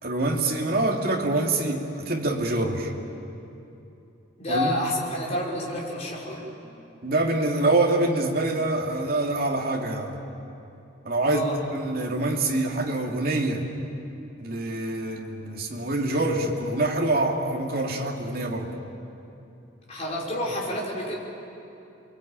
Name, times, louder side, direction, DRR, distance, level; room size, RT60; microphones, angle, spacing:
voice 1, 0.0-2.9 4.5-4.7 7.0-10.2 11.0-11.4 11.7-13.6 14.4-18.7, right 2 dB, 45° right, -1 dB, 2.8 m, -25 dB
voice 2, 4.4-6.5 11.2-11.6 19.9-21.2, left 1 dB, 35° left, -3 dB, 5.3 m, -29 dB
28.5 x 22.0 x 9.1 m, 2.8 s
head